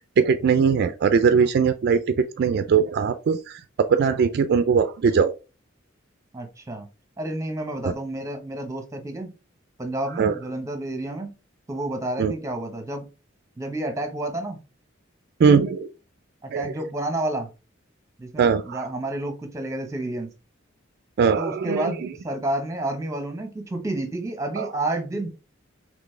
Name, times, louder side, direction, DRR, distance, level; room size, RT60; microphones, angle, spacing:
voice 1, 0.2-2.0 2.4-5.3 10.2-10.3 12.2-12.3 15.4-15.9 16.5-16.7 18.4-18.8 21.2-21.9 24.6-24.7, right 6 dB, 55° right, 0.3 m, -20 dB
voice 2, 6.3-6.9 7.2-9.3 9.8-11.3 11.7-13.1 13.6-14.6 16.4-17.5 18.2-20.3 21.4-25.3, right 1 dB, 15° right, 0.9 m, -30 dB
4.0 x 3.1 x 3.2 m
head